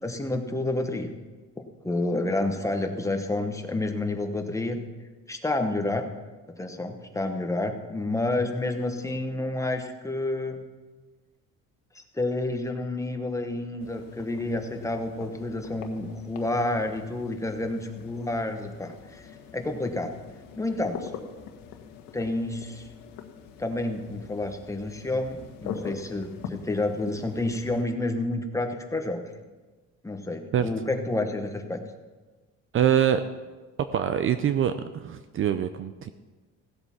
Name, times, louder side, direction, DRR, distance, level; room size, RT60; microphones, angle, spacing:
voice 1, 0.0-1.1 1.8-4.8 5.3-6.1 6.6-10.6 12.1-19.3 19.5-20.1 20.6-21.1 22.1-22.9 23.6-29.2 30.0-31.8, left 2 dB, 10° left, 5 dB, 1.1 m, -29 dB
sound 1, 13.8-27.8, left 7 dB, 85° left, 1.5 m, -43 dB
voice 2, 32.7-33.2 33.8-36.1, right 9 dB, 40° right, 11 dB, 0.5 m, -24 dB
16.5 x 7.9 x 5.8 m, 1.3 s
cardioid pair, 145°, 32 cm